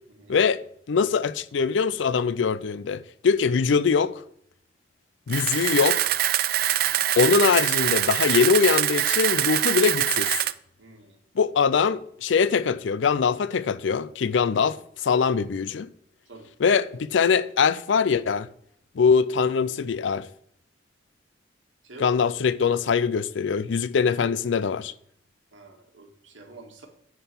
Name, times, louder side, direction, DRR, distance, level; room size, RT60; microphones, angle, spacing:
voice 1, 0.3-0.6 0.9-4.1 5.3-6.1 7.2-10.4 11.4-15.9 16.6-18.5 19.0-20.3 22.0-24.9, left 6 dB, 80° left, 0.4 m, -22 dB
Camera, 5.3-10.5, right 12 dB, 50° right, 0.3 m, -24 dB
voice 2, 6.7-7.0 10.8-11.2 16.3-16.5 21.8-22.2 25.5-26.9, right 2 dB, 90° right, 1.9 m, -47 dB
9.6 x 4.0 x 6.8 m
head